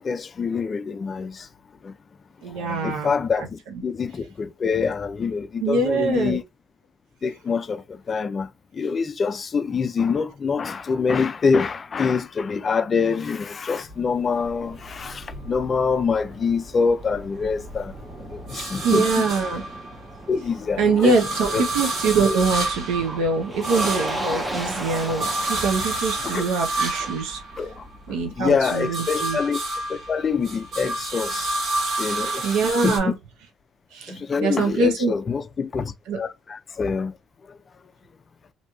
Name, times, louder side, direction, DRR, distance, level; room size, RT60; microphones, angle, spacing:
voice 1, 0.0-1.3 2.6-6.4 7.2-7.8 8.1-8.5 8.8-15.2 15.5-17.9 18.5-19.2 20.3-21.1 21.5-21.6 26.2-26.4 27.6-27.7 28.4-29.6 29.9-31.5 32.0-32.3 32.8-33.1 34.3-35.9 36.2-37.1, left 5 dB, 30° left, 0.3 m, -25 dB
voice 2, 2.4-3.5 5.6-6.4 18.8-19.6 20.8-27.4 28.1-29.4 32.4-33.2 33.9-35.1 36.1-36.2, right 3 dB, 85° right, 0.6 m, -23 dB
Motor vehicle (road), 13.5-28.5, right 1 dB, 15° right, 0.6 m, -37 dB
sound 1, 13.9-16.3 16.6-20.3 20.7-28.1 28.4-33.0, right 2 dB, 60° right, 1.7 m, -30 dB
2.9 x 2.6 x 2.3 m
cardioid pair, 135°, 0 cm